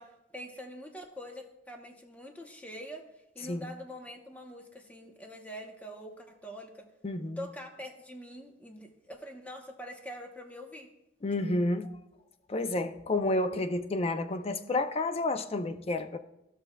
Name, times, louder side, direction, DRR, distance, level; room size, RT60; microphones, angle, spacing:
voice 1, 0.0-3.0 3.3-6.9 7.4-10.9, equal, 10° left, 0.9 m, -44 dB
voice 2, 7.0-7.5 11.2-11.9 12.5-16.2, left 2 dB, 35° left, 0.5 m, -30 dB
15.0 x 5.9 x 2.3 m
head